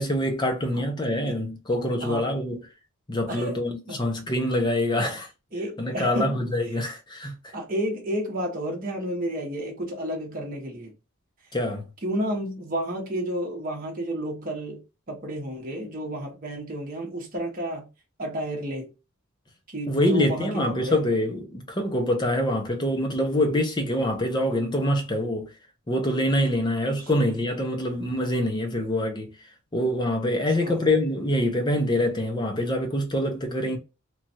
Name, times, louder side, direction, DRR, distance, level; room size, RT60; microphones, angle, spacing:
voice 1, 0.0-2.6 3.1-5.3 5.8-7.5 11.5-11.8 19.9-25.5 25.9-29.3 29.7-33.8, left 1 dB, 20° left, 0.6 m, -25 dB
voice 2, 2.0-2.3 3.3-3.6 3.9-4.1 4.9-5.2 5.5-6.4 7.5-10.9 12.0-17.9 18.2-18.9 19.7-21.0 30.6-30.9 33.6-33.8, equal, 40° right, 0.9 m, -31 dB
3.0 x 2.3 x 2.7 m
head